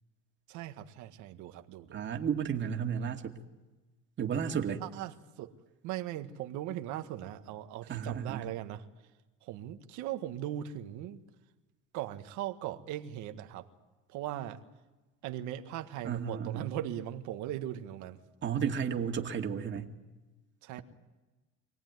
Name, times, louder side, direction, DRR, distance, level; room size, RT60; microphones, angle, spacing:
voice 1, 0.5-2.0 4.8-5.5 5.8-8.8 9.4-11.2 11.9-13.7 14.1-14.6 15.2-18.2 20.6-20.8, right 12 dB, 80° right, 1.7 m, -39 dB
voice 2, 1.9-3.3 4.2-4.8 7.9-8.5 16.0-16.7 18.4-19.9, right 7 dB, 40° right, 2.2 m, -33 dB
25.0 x 18.5 x 9.5 m
cardioid pair, 115°, 29 cm